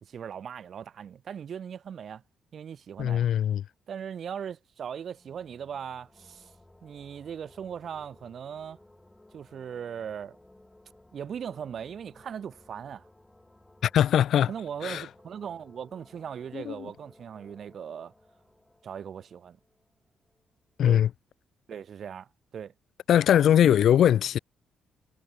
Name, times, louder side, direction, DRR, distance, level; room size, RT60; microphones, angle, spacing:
voice 1, 0.0-2.2 2.5-3.3 3.9-6.5 6.8-8.8 9.3-10.4 11.1-13.1 14.5-18.1 18.8-19.6 20.8-21.0 21.7-22.7 23.6-23.8, right 8 dB, 55° right, 1.7 m, -39 dB
voice 2, 3.0-3.6 13.9-14.5 14.8-15.0 16.5-16.7 20.8-21.1 23.1-24.4, left 10 dB, 70° left, 0.3 m, -21 dB
sound 1, 5.0-20.5, left 1 dB, 10° left, 5.1 m, -58 dB
cardioid pair, 90°, 0 cm